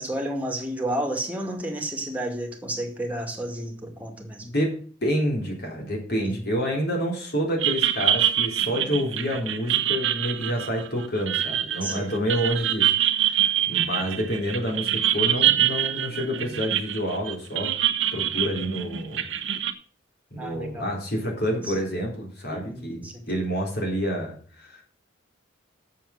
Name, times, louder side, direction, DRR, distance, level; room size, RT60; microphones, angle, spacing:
voice 1, 0.0-4.5 6.2-6.5 10.4-10.6 11.8-12.1 18.2-18.6 20.4-20.9 21.6-21.8 22.5-23.2, right 1 dB, 10° right, 2 dB, 2.1 m, -32 dB
voice 2, 4.4-17.7 18.1-19.2 20.3-24.8, equal, 55° left, 0 dB, 3.7 m, -28 dB
sound 1, 7.6-19.7, right 11 dB, 70° right, 0.9 m, -25 dB
7.5 x 7.2 x 7.0 m, 0.43 s
head